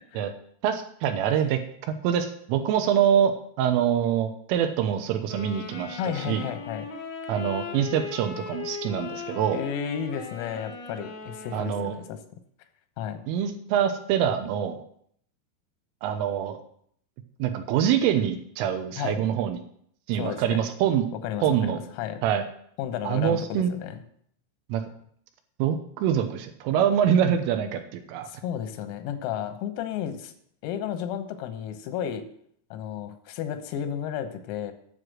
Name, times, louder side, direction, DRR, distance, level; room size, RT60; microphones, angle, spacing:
voice 1, 0.6-1.6 2.0-3.3 3.6-6.5 7.3-9.6 11.5-11.9 13.3-14.8 16.0-16.6 17.4-19.6 20.1-21.0 21.4-21.8 22.2-22.4 23.0-23.7 24.7-24.8 25.6-28.3, right 9 dB, 80° right, 7 dB, 3.3 m, -25 dB
Wind instrument woodwind instrument, 5.3-12.2, left 5 dB, 55° left, 3.0 m, -38 dB
voice 2, 6.0-6.9 9.5-12.2 13.0-13.3 19.0-19.3 20.2-20.6 21.1-22.2 22.8-24.0 28.3-30.3 30.6-32.3 32.7-34.7, left 9 dB, 90° left, 8 dB, 3.8 m, -33 dB
9.6 x 7.5 x 6.4 m, 0.65 s
omnidirectional pair, 6.0 m